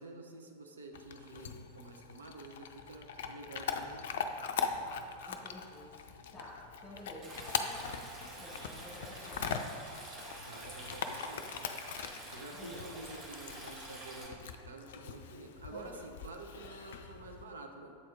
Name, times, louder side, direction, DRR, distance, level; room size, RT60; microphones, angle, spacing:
voice 1, 0.0-4.4 10.4-11.7 12.3-18.0, right 2 dB, 70° right, 3 dB, 0.6 m, -49 dB
Chewing mastication / Dog, 0.9-17.4, left 6 dB, 55° left, 0.4 m, -41 dB
voice 2, 5.2-5.9 6.3-9.6 12.5-13.0 15.7-16.0, equal, 15° left, -7 dB, 1.4 m, -51 dB
sound 1, 5.7-14.2, right 1 dB, 85° right, 1.0 m, -61 dB
Stream, 7.2-14.3, right 1 dB, 25° right, 1.4 m, -48 dB
8.0 x 4.3 x 3.7 m, 2.4 s
figure-of-eight pair, 90°, 0 cm